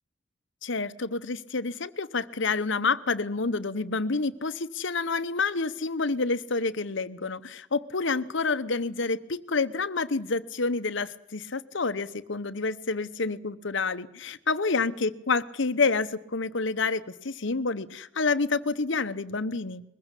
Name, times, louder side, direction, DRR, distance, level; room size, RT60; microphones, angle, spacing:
voice 1, 0.6-19.8, left 4 dB, 60° left, 13 dB, 1.0 m, -28 dB
22.0 x 15.5 x 8.2 m, 0.87 s
head